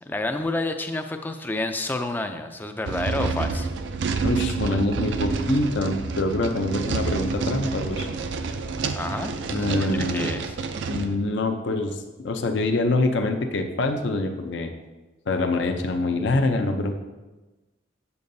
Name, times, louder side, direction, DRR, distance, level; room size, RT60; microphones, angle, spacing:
voice 1, 0.1-3.7 9.0-10.6, left 2 dB, 10° left, 6 dB, 0.3 m, -29 dB
sound 1, 2.8-11.1, right 4 dB, 65° right, 0.4 m, -28 dB
voice 2, 4.2-8.2 9.5-10.4 10.9-14.7 15.3-16.9, left 2 dB, 65° left, 5 dB, 0.5 m, -25 dB
7.5 x 6.9 x 2.7 m, 1.1 s
head